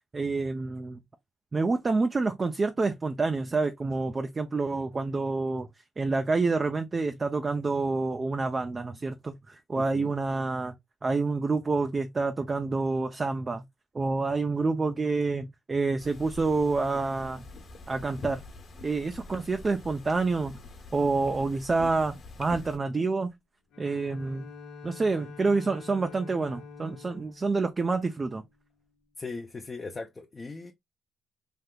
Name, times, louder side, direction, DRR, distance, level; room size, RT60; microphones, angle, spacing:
voice 1, 0.1-1.0 1.5-5.7 6.0-10.7 11.0-13.6 13.9-17.4 17.9-18.4 18.8-20.5 20.9-23.3 23.8-24.5 24.8-28.4, right 3 dB, 30° right, 0.4 m, -28 dB
voice 2, 9.8-10.2 29.2-30.7, left 3 dB, 25° left, 0.5 m, -39 dB
sound 1, 16.0-22.8, left 2 dB, 55° left, 1.1 m, -45 dB
Bowed string instrument, 23.7-28.8, left 4 dB, 85° left, 0.9 m, -47 dB
3.4 x 2.7 x 2.2 m
cardioid pair, 90°, 0 cm